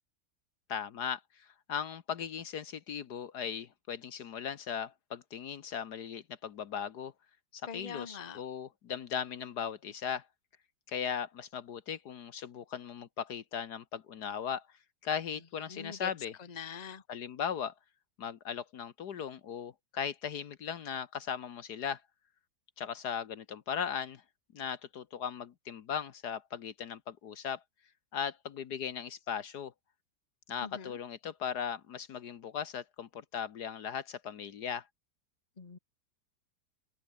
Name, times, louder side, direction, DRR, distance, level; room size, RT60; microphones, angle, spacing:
voice 1, 0.7-7.1 7.5-10.3 10.9-14.6 15.0-16.4 17.1-17.7 18.2-22.0 22.8-24.2 24.5-27.6 28.1-29.7 30.5-34.9, left 7 dB, 65° left, 1.5 m, -38 dB
voice 2, 7.7-8.4 15.7-16.1 16.5-17.0 30.6-31.0 35.6-35.8, left 6 dB, 25° left, 1.2 m, -43 dB
open air
omnidirectional pair, 2.0 m